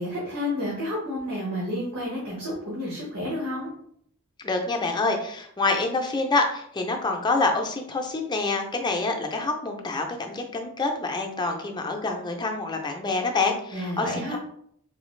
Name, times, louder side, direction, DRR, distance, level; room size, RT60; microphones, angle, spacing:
voice 1, 0.0-3.7 13.7-14.4, left 1 dB, 85° right, -5 dB, 1.2 m, -30 dB
voice 2, 4.4-14.4, left 3 dB, 20° left, 3 dB, 0.5 m, -27 dB
3.8 x 2.4 x 3.1 m, 0.66 s
head